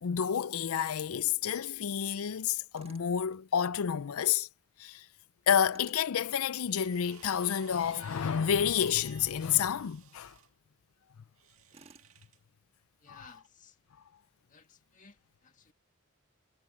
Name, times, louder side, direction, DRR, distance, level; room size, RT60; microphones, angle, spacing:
voice 1, 0.0-4.5 4.8-5.0 5.5-10.3, left 8 dB, 90° left, 0.5 m, -29 dB
Tools, 2.7-3.1 5.7-6.1 8.7-9.1 11.7-12.1, right 3 dB, 30° right, 1.5 m, -55 dB
sound 1, 6.2-10.5 11.4-12.4 13.3-13.5, right 8 dB, 85° right, 1.8 m, -56 dB
voice 2, 13.0-13.8 14.5-15.7, left 5 dB, 35° left, 2.1 m, -57 dB
head